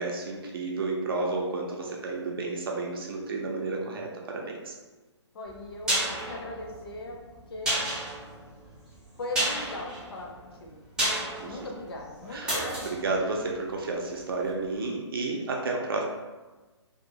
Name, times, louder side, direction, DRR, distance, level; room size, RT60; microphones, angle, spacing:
voice 1, 0.0-4.7 11.4-11.6 12.3-12.5 12.8-16.0, right 3 dB, 50° right, 0 dB, 0.5 m, -31 dB
voice 2, 1.8-2.2 5.3-7.2 7.5-7.8 9.2-10.8 11.4-13.0, left 2 dB, 55° left, 0 dB, 0.6 m, -39 dB
sound 1, 5.5-14.3 14.6-14.7, right 1 dB, 5° right, 0.5 m, -32 dB
2.5 x 2.4 x 2.7 m, 1.2 s
figure-of-eight pair, 135°, 15 cm